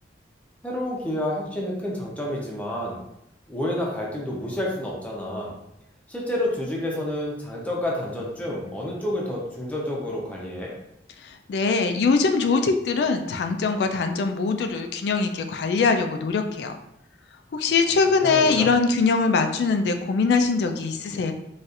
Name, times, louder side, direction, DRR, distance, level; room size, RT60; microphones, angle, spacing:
voice 1, 0.6-3.0 3.5-5.6 6.1-10.7 18.2-18.7, left 1 dB, 10° left, -3 dB, 0.6 m, -29 dB
voice 2, 11.2-16.7 17.5-21.3, left 4 dB, 65° left, 6 dB, 0.3 m, -22 dB
4.0 x 2.4 x 2.4 m, 0.83 s
head